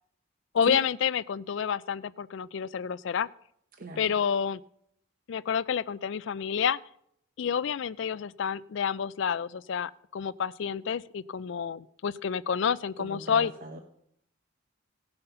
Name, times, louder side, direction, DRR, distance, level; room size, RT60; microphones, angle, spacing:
voice 1, 0.5-3.3 4.0-4.6 5.3-6.8 7.4-13.5, left 7 dB, 60° left, 18 dB, 0.4 m, -29 dB
voice 2, 3.8-4.1 13.0-13.8, right 1 dB, 40° right, 5 dB, 0.8 m, -39 dB
17.0 x 5.7 x 6.6 m, 0.73 s
head